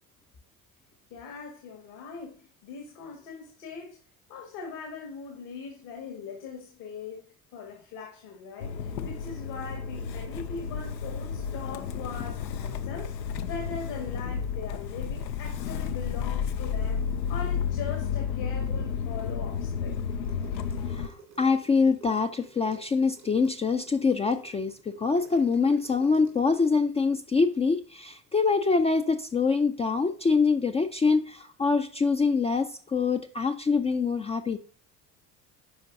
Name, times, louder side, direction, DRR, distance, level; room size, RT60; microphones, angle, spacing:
voice 1, 1.1-4.0 4.3-7.2 7.5-13.1 13.5-17.0 17.3-20.0, left 5 dB, 65° left, 1.8 m, -41 dB
Motor vehicle (road) / Engine starting, 8.6-21.1, left 7 dB, 85° left, 0.6 m, -32 dB
sound 1, 20.1-26.8, right 5 dB, 85° right, 2.3 m, -51 dB
voice 2, 20.9-34.6, left 4 dB, 15° left, 0.3 m, -25 dB
11.5 x 4.4 x 2.7 m
hypercardioid pair, 65°, 49 cm